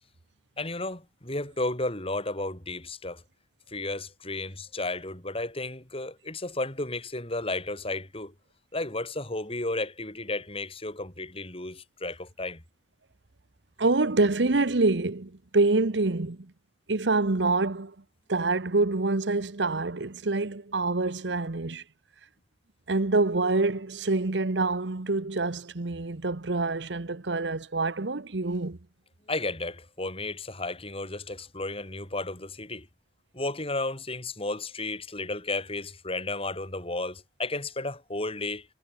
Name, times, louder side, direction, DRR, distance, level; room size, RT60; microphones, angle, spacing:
voice 1, 0.6-3.2 3.7-8.3 8.7-12.6 29.3-32.9 33.3-38.7, left 2 dB, 35° left, 7.0 m, -33 dB
voice 2, 13.8-16.5 16.9-17.9 18.3-21.8 22.9-28.8, right 3 dB, 90° right, 1.1 m, -26 dB
head